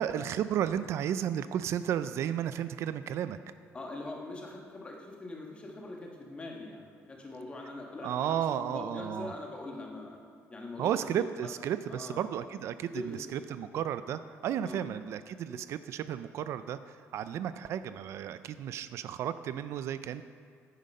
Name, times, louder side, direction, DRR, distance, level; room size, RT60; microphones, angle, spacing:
voice 1, 0.0-3.4 8.0-9.3 10.8-13.0 13.3-16.8 17.1-20.2, right 10 dB, 60° right, 12 dB, 0.4 m, -33 dB
voice 2, 3.7-10.2 10.5-11.5 11.9-12.3 12.9-13.7 14.6-14.9 15.5-15.6, left 2 dB, 20° left, 0 dB, 1.5 m, -42 dB
10.5 x 9.1 x 5.4 m, 2.1 s
cardioid pair, 165°, 5 cm